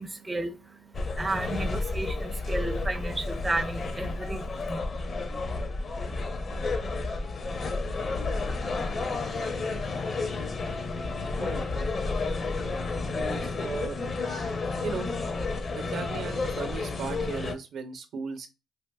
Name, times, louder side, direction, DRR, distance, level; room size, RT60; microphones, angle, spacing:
voice 1, 0.0-4.8, right 2 dB, 15° right, 0.4 m, -33 dB
sound 1, 0.9-17.5, left 3 dB, 45° left, 0.6 m, -31 dB
voice 2, 13.1-14.0 14.8-15.1 15.8-18.5, right 5 dB, 70° right, 0.7 m, -36 dB
3.3 x 2.6 x 2.2 m
cardioid pair, 90°, 0 cm